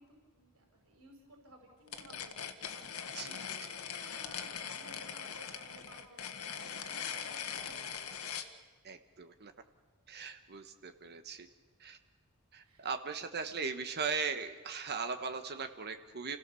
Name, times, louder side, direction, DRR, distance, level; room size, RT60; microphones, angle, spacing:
voice 1, 0.0-8.3 12.6-12.9, right 1 dB, 75° right, 1 dB, 5.5 m, -58 dB
sound 1, 1.9-8.5, left 7 dB, 75° left, 1.6 m, -41 dB
voice 2, 8.8-9.5 10.1-11.5 11.8-12.0 12.5-16.4, right 5 dB, 50° right, 7 dB, 1.3 m, -38 dB
29.5 x 17.0 x 7.0 m, 1.4 s
head